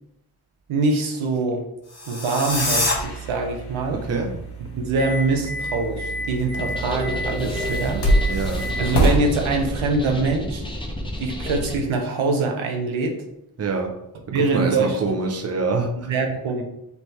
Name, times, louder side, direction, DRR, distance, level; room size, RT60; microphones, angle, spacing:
voice 1, 0.7-1.6 2.1-4.0 4.7-8.0 8.8-10.6 11.2-13.2 14.3-15.2 16.1-16.6, right 3 dB, 75° right, 3 dB, 0.8 m, -24 dB
sound 1, 1.8-2.9, left 2 dB, 30° left, 1.2 m, -24 dB
sound 2, 2.5-9.2, right 1 dB, 50° left, 1.1 m, -26 dB
voice 2, 3.9-4.4 8.3-8.7 13.6-14.0 14.3-16.1, right 4 dB, 30° right, 4 dB, 0.7 m, -25 dB
sound 3, 6.6-11.8, left 1 dB, 10° left, 0.7 m, -31 dB
3.3 x 3.0 x 4.2 m, 0.82 s
cardioid pair, 65°, 49 cm